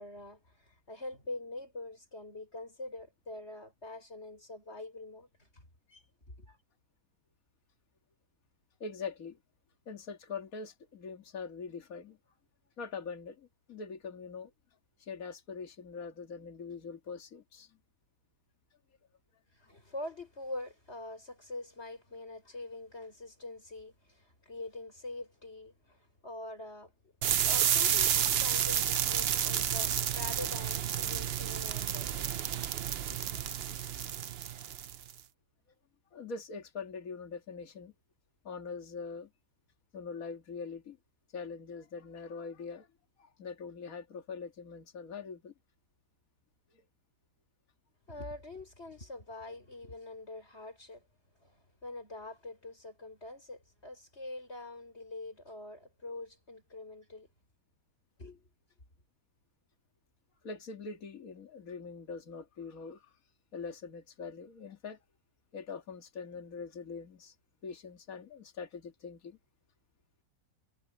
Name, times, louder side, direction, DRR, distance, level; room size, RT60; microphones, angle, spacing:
voice 1, 0.0-6.0 6.4-6.6 19.5-26.9 27.5-32.3 33.1-33.5 48.1-51.0 51.4-57.3 58.2-58.5, left 2 dB, 35° left, 6.6 m, -45 dB
voice 2, 8.8-9.4 9.9-12.2 12.8-14.5 15.0-17.8 36.1-37.9 38.4-39.3 39.9-41.0 41.3-42.9 43.2-45.5 46.7-46.8 60.4-63.1 63.5-65.0 65.5-67.3 67.6-69.4, left 5 dB, 50° left, 2.3 m, -43 dB
sound 1, 27.2-35.1, right 9 dB, 70° right, 0.5 m, -30 dB
omnidirectional pair, 1.9 m